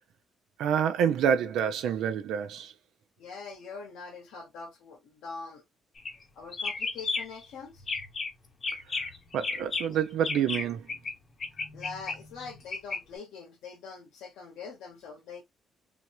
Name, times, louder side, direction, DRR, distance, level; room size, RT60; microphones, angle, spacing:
voice 1, 0.6-2.7 8.9-9.1 9.3-10.9, right 8 dB, 85° right, 0.6 m, -27 dB
voice 2, 3.2-5.6 6.4-7.9 11.7-15.4, left 4 dB, 90° left, 1.7 m, -43 dB
sound 1, 6.0-6.2 6.5-7.4 7.8-8.3 8.6-11.1 11.4-13.0, left 4 dB, 45° left, 1.1 m, -33 dB
3.7 x 2.1 x 2.9 m
cardioid pair, 90°, 0 cm